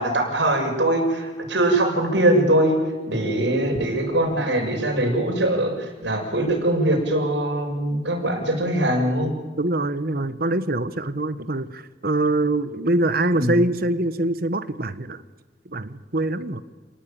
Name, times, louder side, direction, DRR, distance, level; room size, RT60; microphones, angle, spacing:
voice 1, 0.0-2.8 3.1-9.3 13.3-13.6, right 1 dB, 85° right, 2 dB, 6.9 m, -22 dB
voice 2, 9.6-15.2 15.7-16.6, right 2 dB, 55° right, 13 dB, 1.4 m, -24 dB
29.0 x 18.5 x 9.1 m, 1.3 s
head